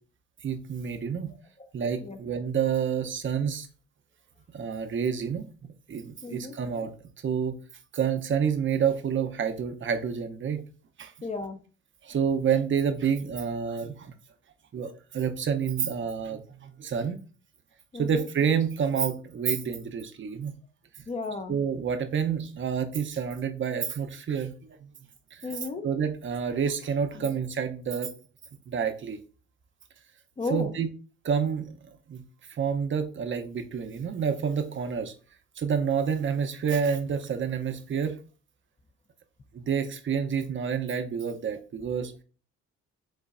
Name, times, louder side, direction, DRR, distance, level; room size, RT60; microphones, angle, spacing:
voice 1, 0.4-1.3 1.7-3.7 4.5-5.4 5.9-6.9 7.2-7.6 7.9-10.6 11.0-11.1 12.0-14.1 14.7-17.2 17.9-20.5 21.5-24.5 24.8-24.9 25.3-25.5 25.8-28.1 28.7-29.2 30.5-30.9 31.2-31.7 32.1-32.2 32.5-35.1 35.6-38.1 39.5-42.1, right 7 dB, 40° right, 7 dB, 0.7 m, -28 dB
voice 2, 6.2-6.5 11.2-11.6 17.9-18.3 21.1-21.5 25.4-25.9 27.1-27.3 30.4-30.7, left 3 dB, 20° left, 6 dB, 0.6 m, -34 dB
5.5 x 3.8 x 2.5 m, 0.37 s
cardioid pair, 90°, 30 cm